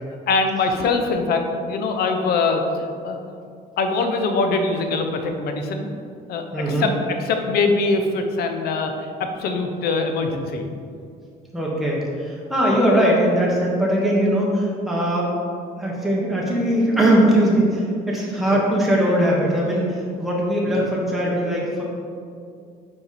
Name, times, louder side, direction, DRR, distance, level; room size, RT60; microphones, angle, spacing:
voice 1, 0.3-3.2 3.8-5.9 6.3-6.9 7.2-8.9 9.2-10.7 18.5-18.6 20.7-20.9, left 3 dB, 70° left, 5 dB, 0.7 m, -23 dB
voice 2, 6.5-6.9 11.5-15.3 15.8-21.8, right 1 dB, ahead, -5 dB, 1.2 m, -20 dB
5.0 x 4.7 x 4.2 m, 2.4 s
cardioid pair, 110°, 17 cm